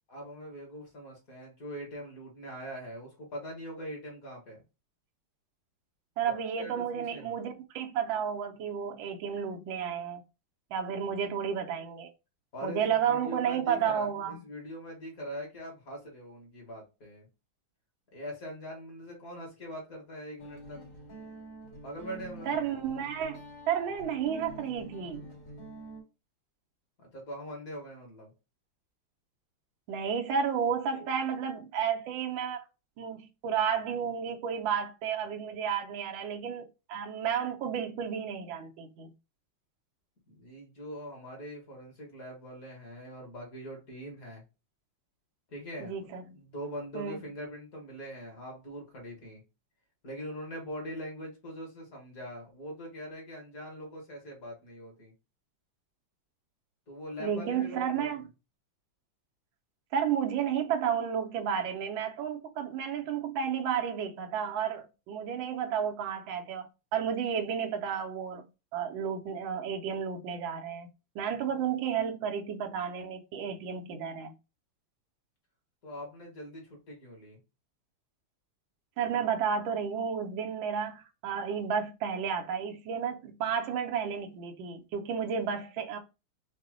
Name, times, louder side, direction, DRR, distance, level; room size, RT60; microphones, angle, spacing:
voice 1, 0.1-4.6 6.2-7.3 12.5-17.3 18.1-20.8 21.8-22.6 27.0-28.3 40.3-44.4 45.5-46.0 46.3-49.4 50.0-55.1 56.9-58.1 75.8-77.4, equal, 45° left, 2.0 m, -42 dB
voice 2, 6.2-10.2 10.7-12.1 12.6-14.4 22.5-23.4 23.7-25.3 29.9-32.6 33.0-39.1 45.8-46.2 46.9-47.2 57.2-58.3 59.9-68.5 68.7-70.9 71.1-74.3 79.0-86.0, right 7 dB, 80° right, 1.4 m, -32 dB
Guitar, 20.4-26.0, right 1 dB, 65° left, 2.7 m, -47 dB
4.8 x 2.2 x 3.7 m
omnidirectional pair, 2.2 m